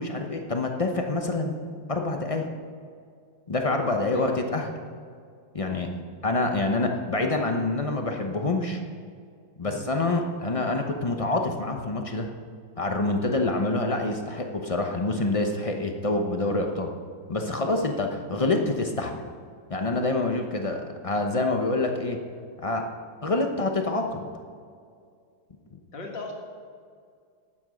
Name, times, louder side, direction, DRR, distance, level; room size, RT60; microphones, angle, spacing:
voice 1, 0.0-1.6 1.9-2.5 3.5-4.7 5.5-5.9 6.2-8.8 9.6-12.3 12.8-16.9 17.3-19.2 19.7-22.2 22.6-22.8 23.2-24.3, left 2 dB, 40° left, 3 dB, 0.5 m, -26 dB
voice 2, 4.1-4.4 6.9-7.1 9.6-9.8 25.9-26.3, left 3 dB, 75° left, -1 dB, 2.7 m, -38 dB
11.5 x 8.7 x 5.2 m, 2.2 s
omnidirectional pair, 2.0 m